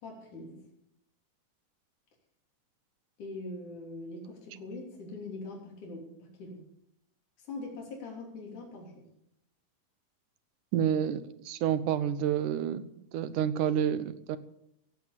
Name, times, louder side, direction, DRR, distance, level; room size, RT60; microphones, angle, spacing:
voice 1, 0.0-0.6 3.2-6.6 7.4-9.0, left 2 dB, 70° left, -2 dB, 4.9 m, -42 dB
voice 2, 10.7-12.8 13.1-14.4, right 9 dB, 75° right, 13 dB, 2.3 m, -29 dB
16.0 x 8.7 x 7.4 m, 0.78 s
omnidirectional pair, 3.7 m